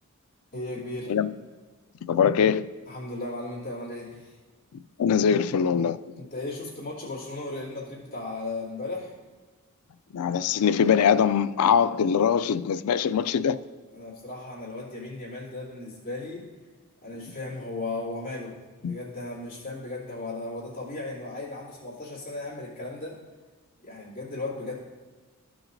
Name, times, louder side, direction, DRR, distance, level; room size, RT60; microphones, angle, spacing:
voice 1, 0.5-1.1 2.9-4.4 6.2-9.1 13.9-16.4 17.0-18.5 18.8-23.1 23.8-24.7, left 2 dB, 40° left, 2.7 m, -36 dB
voice 2, 2.0-2.7 5.0-6.0 10.1-13.6 18.8-18.9, left 7 dB, 90° left, 0.4 m, -22 dB
14.5 x 6.0 x 2.6 m
head